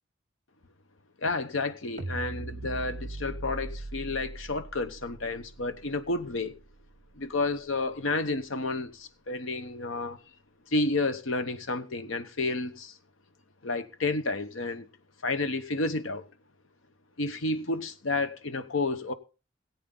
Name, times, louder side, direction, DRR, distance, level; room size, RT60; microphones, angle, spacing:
voice 1, 1.2-6.5 7.1-10.2 10.7-13.0 13.6-14.9 15.2-16.3 17.2-19.1, left 2 dB, 80° left, 1.0 m, -31 dB
sound 1, 2.0-8.3, right 2 dB, 40° right, 0.7 m, -41 dB
18.0 x 8.4 x 3.8 m
head